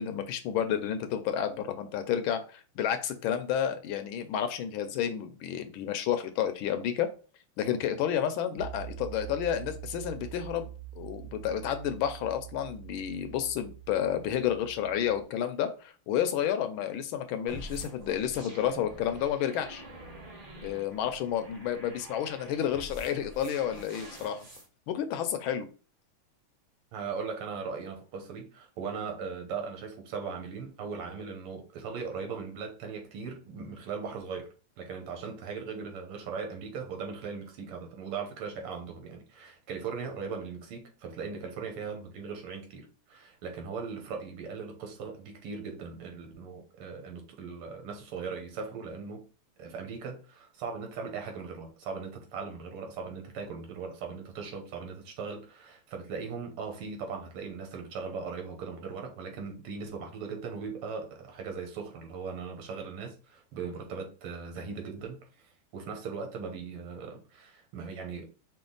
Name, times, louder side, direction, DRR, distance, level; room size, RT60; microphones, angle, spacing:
voice 1, 0.0-7.1 7.6-10.7 10.9-19.8 20.6-24.4 24.9-25.7, left 9 dB, 75° left, 1.3 m, -31 dB
sound 1, 8.6-15.2, right 13 dB, 45° right, 1.0 m, -45 dB
sound 2, 17.5-24.7, right 1 dB, 30° right, 0.6 m, -47 dB
voice 2, 26.9-49.3 49.6-65.5 65.7-68.3, right 5 dB, 85° right, 2.0 m, -39 dB
5.1 x 2.4 x 3.8 m
omnidirectional pair, 2.4 m